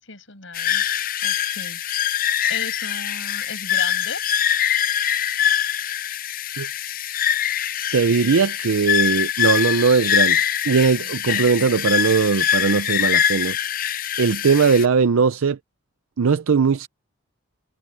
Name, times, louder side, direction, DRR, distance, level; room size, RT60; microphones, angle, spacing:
voice 1, 0.0-0.8 1.2-4.2 11.0-11.1, left 4 dB, 65° left, 7.2 m, -36 dB
sound 1, 0.5-14.8, left 9 dB, 40° left, 0.6 m, -23 dB
voice 2, 7.9-13.6 14.2-15.6 16.2-16.9, right 5 dB, 85° right, 0.5 m, -19 dB
head